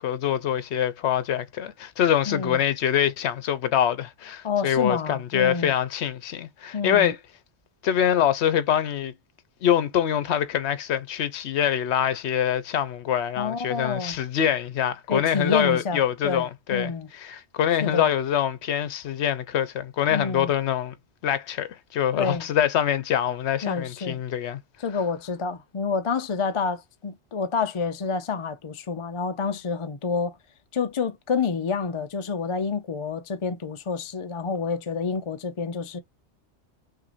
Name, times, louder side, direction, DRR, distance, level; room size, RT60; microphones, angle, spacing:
voice 1, 0.0-7.2 7.8-9.1 9.6-20.9 21.2-24.6, left 9 dB, 70° left, 0.9 m, -24 dB
voice 2, 2.3-2.6 4.4-5.7 6.7-7.1 13.4-14.2 15.1-17.1 17.8-18.1 20.1-20.5 22.1-22.4 23.6-24.2 24.8-30.4 30.7-36.0, left 5 dB, 45° left, 0.4 m, -28 dB
5.8 x 2.7 x 2.5 m
omnidirectional pair, 1.2 m